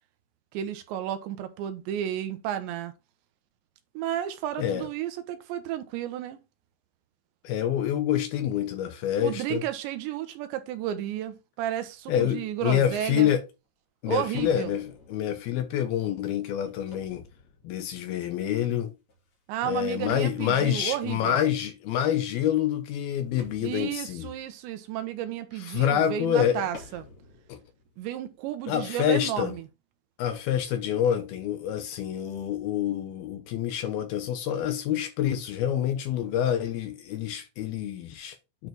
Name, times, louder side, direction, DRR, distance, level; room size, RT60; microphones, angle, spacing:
voice 1, 0.5-2.9 3.9-6.4 9.2-13.3 14.1-14.7 19.5-21.3 23.6-27.1 28.0-29.7, right 11 dB, 85° right, 3.3 m, -32 dB
voice 2, 4.6-4.9 7.4-9.6 12.1-13.4 14.0-17.2 17.6-18.9 19.6-24.3 25.7-26.7 27.5-27.6 28.7-29.5 30.2-38.4, left 10 dB, 70° left, 2.6 m, -27 dB
sound 1, 11.8-12.4 13.1-13.2 14.4-18.7 19.1-19.7 20.1-21.6 23.4-25.1 26.7-28.8, left 3 dB, 40° left, 2.5 m, -51 dB
9.6 x 4.2 x 4.5 m
omnidirectional pair, 5.1 m